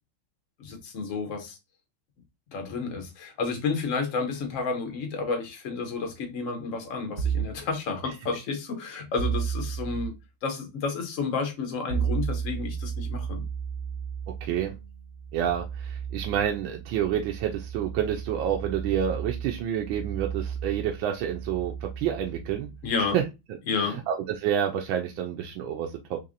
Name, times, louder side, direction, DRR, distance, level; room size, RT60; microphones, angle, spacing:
voice 1, 0.6-1.6 2.5-13.4 22.8-23.2 23.7-24.0, left 4 dB, 50° left, 1.0 m, -31 dB
sound 1, 7.2-7.6 9.2-10.1 11.9-23.3, right 7 dB, 40° right, 1.0 m, -33 dB
voice 2, 14.4-14.8 15.3-22.7 23.1-23.2 23.7-26.2, right 9 dB, 80° right, 1.3 m, -28 dB
4.1 x 3.2 x 2.5 m
omnidirectional pair, 2.2 m